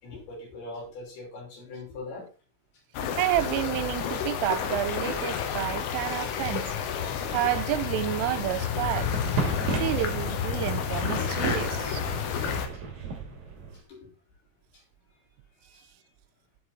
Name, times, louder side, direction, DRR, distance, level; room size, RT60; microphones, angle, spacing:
voice 1, 0.0-2.3 13.9-14.1 15.7-15.8, left 2 dB, 50° left, 7.7 m, -41 dB
sound 1, 3.0-12.7, left 8 dB, 90° left, 4.1 m, -30 dB
voice 2, 3.0-6.8 7.3-9.1 9.8-12.0, right 14 dB, 85° right, 3.3 m, -30 dB
sound 2, 8.8-13.8, right 4 dB, 45° right, 3.4 m, -34 dB
11.5 x 7.8 x 4.3 m
omnidirectional pair, 5.8 m